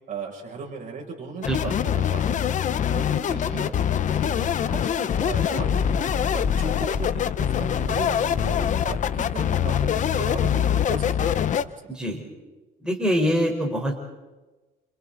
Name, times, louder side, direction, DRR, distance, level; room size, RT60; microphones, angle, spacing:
voice 1, 0.1-2.5 2.9-5.8 6.2-8.6 8.8-11.7, right 4 dB, 50° right, 0 dB, 6.9 m, -37 dB
sound 1, 1.4-11.6, left 8 dB, 45° left, 1.0 m, -24 dB
voice 2, 11.9-12.2 12.8-13.9, equal, 5° right, 0 dB, 4.4 m, -24 dB
29.0 x 27.0 x 4.1 m, 1.2 s
cardioid pair, 110°, 17 cm